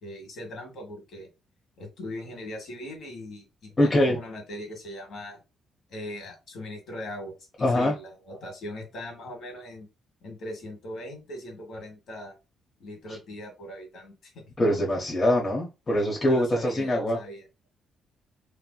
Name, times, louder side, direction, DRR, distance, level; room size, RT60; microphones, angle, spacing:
voice 1, 0.0-1.3 1.8-5.4 5.9-9.9 10.2-12.3 12.8-14.4 16.2-17.4, left 1 dB, 65° left, 1.6 m, -40 dB
voice 2, 3.8-4.2 7.6-7.9 14.6-17.2, left 1 dB, 30° left, 0.8 m, -23 dB
3.1 x 2.7 x 2.3 m
cardioid pair, 90°, 0 cm